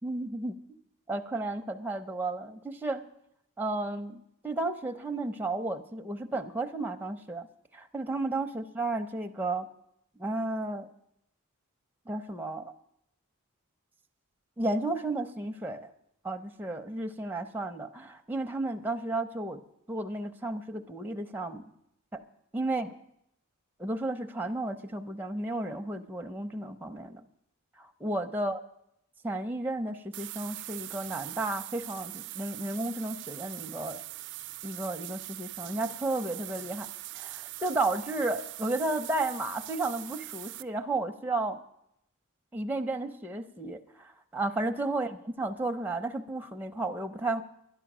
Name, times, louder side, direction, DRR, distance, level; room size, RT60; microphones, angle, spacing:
voice 1, 0.0-0.6 1.1-3.0 3.6-7.5 7.7-9.7 10.2-10.9 12.1-12.7 14.6-15.9 16.2-19.6 19.9-21.6 22.1-22.2 22.5-22.9 23.8-27.3 27.8-28.6 29.2-34.0 34.6-36.9 37.1-41.6 42.5-47.4, right 2 dB, 10° right, 5 dB, 0.6 m, -33 dB
sound 1, 30.1-40.6, right 18 dB, 55° right, 0.4 m, -42 dB
11.5 x 10.5 x 6.0 m, 0.77 s
head